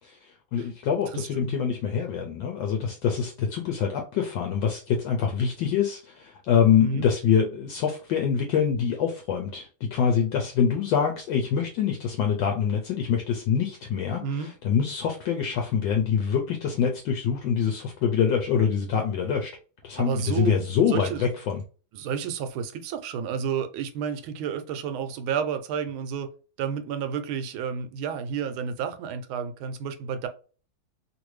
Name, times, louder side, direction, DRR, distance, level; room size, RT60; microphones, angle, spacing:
voice 1, 0.0-19.5 19.8-21.6, left 7 dB, 75° left, 1.2 m, -25 dB
voice 2, 1.1-1.6 6.8-7.1 14.2-14.5 20.0-20.5 20.8-21.2 21.9-26.3 26.6-30.3, right 7 dB, 85° right, 1.4 m, -31 dB
3.2 x 2.6 x 3.1 m
omnidirectional pair, 2.2 m